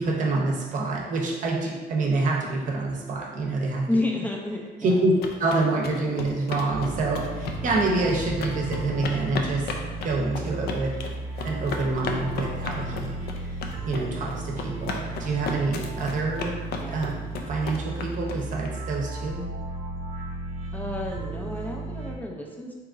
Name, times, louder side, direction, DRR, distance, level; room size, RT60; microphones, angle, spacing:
voice 1, 0.0-3.9 4.8-5.1 5.4-9.7 10.0-10.9 11.4-13.5 13.8-16.6 16.9-17.1 17.5-19.4, right 3 dB, 50° right, -1 dB, 0.7 m, -27 dB
voice 2, 3.9-5.0 16.8-17.0 20.7-22.7, left 2 dB, 10° left, -1 dB, 0.4 m, -30 dB
sound 1, 4.9-18.7, left 5 dB, 70° left, 0.4 m, -35 dB
sound 2, 6.7-22.2, right 2 dB, 85° right, 0.7 m, -35 dB
sound 3, 7.2-12.7 13.1-13.3 13.8-13.9, left 1 dB, 90° left, 1.3 m, -41 dB
3.6 x 3.0 x 2.5 m, 1.4 s
cardioid pair, 110°, 17 cm